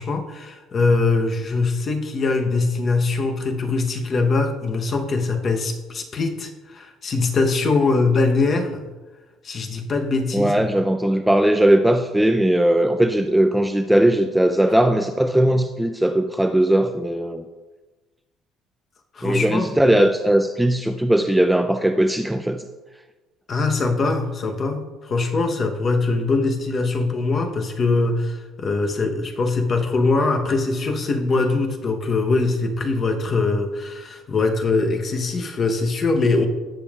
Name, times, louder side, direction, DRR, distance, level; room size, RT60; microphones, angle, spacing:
voice 1, 0.0-8.9 9.4-10.7 19.1-20.0 23.5-36.5, left 3 dB, 30° left, 5 dB, 0.9 m, -22 dB
voice 2, 10.3-17.4 19.2-22.7, right 1 dB, 5° right, 6 dB, 0.3 m, -19 dB
17.5 x 6.9 x 2.4 m, 1.2 s
cardioid pair, 165°, 0 cm